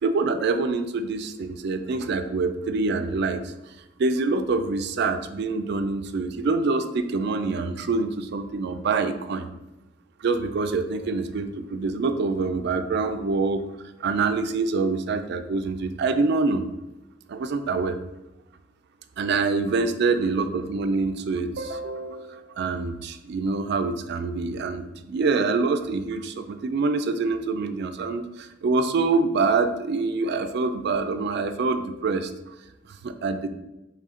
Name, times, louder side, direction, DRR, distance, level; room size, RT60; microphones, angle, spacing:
voice 1, 0.0-3.5 4.0-9.5 10.2-13.7 14.0-16.6 17.3-18.0 19.2-32.5 33.0-33.5, right 3 dB, 60° right, 9 dB, 0.4 m, -25 dB
4.1 x 3.3 x 3.6 m, 0.98 s
head